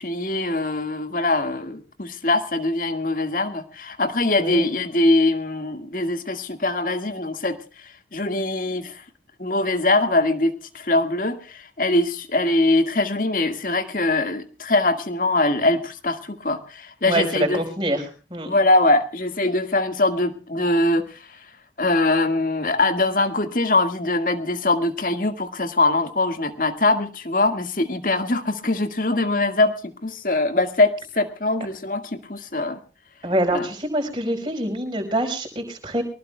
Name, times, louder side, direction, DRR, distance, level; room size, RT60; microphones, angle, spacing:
voice 1, 0.0-7.6 7.8-9.0 9.4-17.6 18.5-21.3 21.8-32.8 33.5-33.7, left 2 dB, 50° left, 9 dB, 1.8 m, -22 dB
voice 2, 17.0-18.5 33.2-36.0, right 1 dB, 25° right, 3 dB, 4.9 m, -25 dB
24.0 x 19.0 x 2.3 m, 0.35 s
head